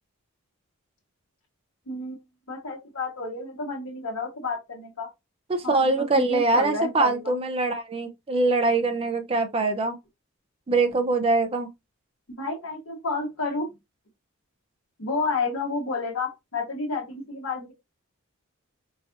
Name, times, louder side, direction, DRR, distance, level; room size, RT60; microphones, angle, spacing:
voice 1, 1.9-2.2 2.5-5.1 5.6-7.3 12.3-13.7 15.0-17.7, left 3 dB, 70° left, 1.0 m, -30 dB
voice 2, 5.5-10.0 10.7-11.7, right 3 dB, 25° right, 0.4 m, -23 dB
3.9 x 2.4 x 2.5 m
head